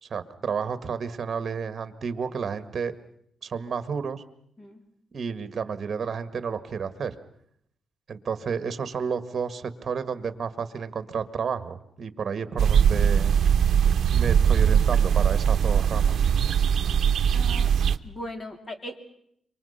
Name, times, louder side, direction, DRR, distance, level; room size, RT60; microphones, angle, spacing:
voice 1, 0.0-2.9 3.4-4.2 5.1-7.2 8.1-13.3 14.1-16.2, right 6 dB, 40° right, 12 dB, 1.7 m, -31 dB
sound 1, 12.6-18.0, right 8 dB, 60° right, 0.9 m, -21 dB
voice 2, 17.3-17.7 18.0-19.0, left 1 dB, 25° left, 7 dB, 3.0 m, -39 dB
27.0 x 24.5 x 5.7 m, 0.68 s
cardioid pair, 130°, 0 cm